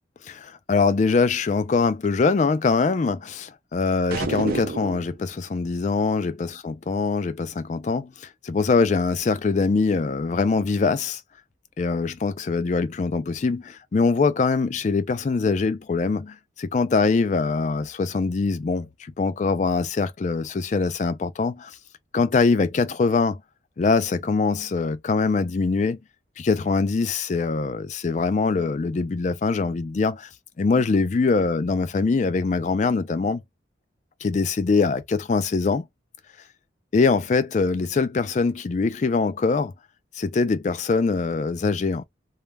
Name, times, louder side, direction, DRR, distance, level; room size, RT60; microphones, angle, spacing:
voice 1, 0.2-11.2 11.8-21.8 22.1-23.4 23.8-26.0 26.4-30.3 30.6-33.4 34.2-35.9 36.9-39.7 40.2-42.0, left 4 dB, 40° left, 0.3 m, -23 dB
sound 1, 4.1-5.1, right 4 dB, 50° right, 0.4 m, -28 dB
2.3 x 2.1 x 3.2 m
head